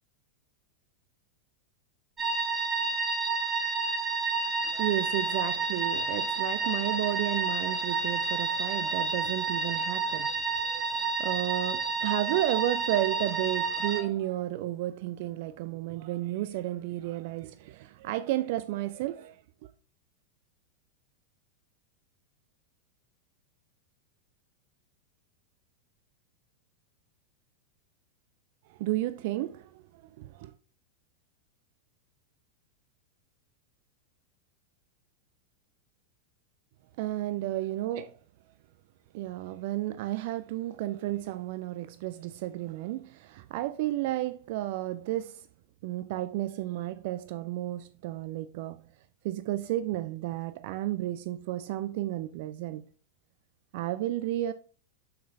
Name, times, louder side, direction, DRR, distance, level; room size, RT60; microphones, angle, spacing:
sound 1, 2.2-14.0, right 4 dB, 20° right, 1.7 m, -30 dB
voice 1, 4.6-19.7 28.7-30.5 37.0-38.1 39.1-45.5 45.8-48.9 49.2-52.8 53.7-54.5, right 15 dB, 50° right, 0.3 m, -32 dB
6.1 x 5.8 x 3.4 m
figure-of-eight pair, 90°, 0 cm